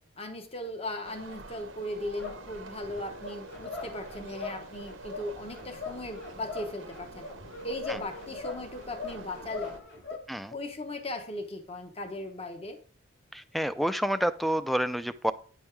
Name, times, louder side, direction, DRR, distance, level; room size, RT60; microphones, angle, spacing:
voice 1, 0.2-7.3 7.6-9.7 10.1-10.2 10.5-12.8, left 1 dB, 30° left, 6 dB, 1.1 m, -38 dB
sound 1, 1.0-9.8, right 3 dB, 90° right, 1.1 m, -47 dB
sound 2, 2.2-10.2, left 4 dB, 70° left, 3.3 m, -42 dB
voice 2, 13.3-15.3, equal, ahead, 12 dB, 0.4 m, -28 dB
9.7 x 5.5 x 4.6 m, 0.41 s
head